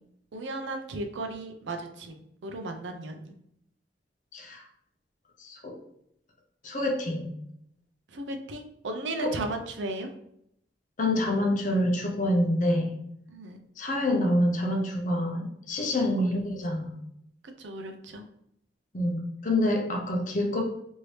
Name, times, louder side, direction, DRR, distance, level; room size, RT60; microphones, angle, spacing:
voice 1, 0.3-3.3 8.1-10.1 13.3-13.6 16.2-16.3 17.6-18.3, right 2 dB, 75° right, 5 dB, 0.5 m, -36 dB
voice 2, 4.3-4.6 5.4-5.8 6.6-7.3 9.2-9.3 11.0-12.9 13.8-16.9 18.9-20.6, left 1 dB, 45° left, 1 dB, 0.6 m, -27 dB
3.1 x 2.7 x 3.1 m, 0.74 s
head